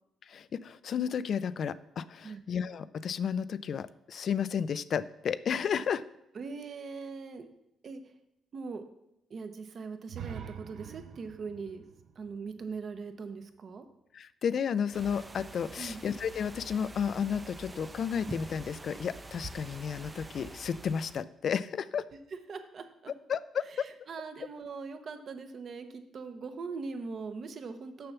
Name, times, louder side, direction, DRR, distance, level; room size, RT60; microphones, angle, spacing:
voice 1, 0.3-6.0 14.1-22.0 23.3-23.8, left 7 dB, 55° left, 16 dB, 0.4 m, -32 dB
voice 2, 6.3-7.5 7.8-8.1 8.5-8.8 9.3-11.8 12.1-13.8 15.8-16.0 22.1-23.1 23.7-28.1, right 4 dB, 50° right, 8 dB, 0.9 m, -41 dB
sound 1, 10.1-13.9, right 8 dB, 70° right, 0.6 m, -46 dB
sound 2, 14.9-21.2, right 2 dB, 20° right, 0.5 m, -46 dB
6.8 x 5.7 x 6.8 m, 0.86 s
cardioid pair, 90°, 0 cm